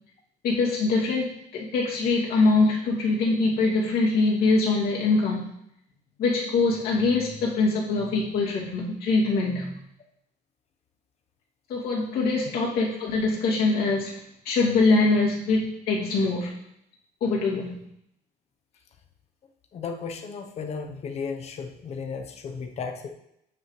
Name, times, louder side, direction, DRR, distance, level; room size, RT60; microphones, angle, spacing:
voice 1, 0.4-5.5 6.2-9.8 11.7-16.5 17.2-17.8, left 3 dB, 65° left, -5 dB, 2.6 m, -23 dB
voice 2, 19.7-23.1, left 5 dB, 40° left, 5 dB, 0.9 m, -34 dB
8.5 x 7.5 x 3.2 m, 0.78 s
cardioid pair, 155°, 17 cm